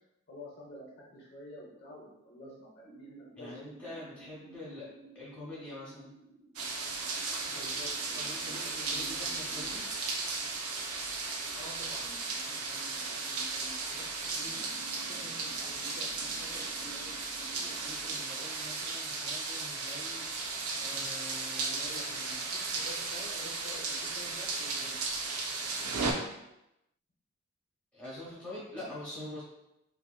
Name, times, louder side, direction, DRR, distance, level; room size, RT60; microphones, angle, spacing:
voice 1, 0.3-0.9 1.1-4.0 7.5-9.7 11.5-14.0 14.3-17.7 18.0-18.3 21.6-25.0 28.5-28.9, left 1 dB, 45° left, -5 dB, 0.7 m, -50 dB
sound 1, 2.8-17.9, right 3 dB, 40° right, 1.0 m, -57 dB
voice 2, 3.4-6.1 8.1-9.9 17.8-20.3 20.7-22.4 27.9-29.4, left 1 dB, 5° left, -9 dB, 1.0 m, -45 dB
sound 2, 6.6-26.1, right 3 dB, 85° right, 0.4 m, -35 dB
2.8 x 2.5 x 2.3 m, 0.87 s
head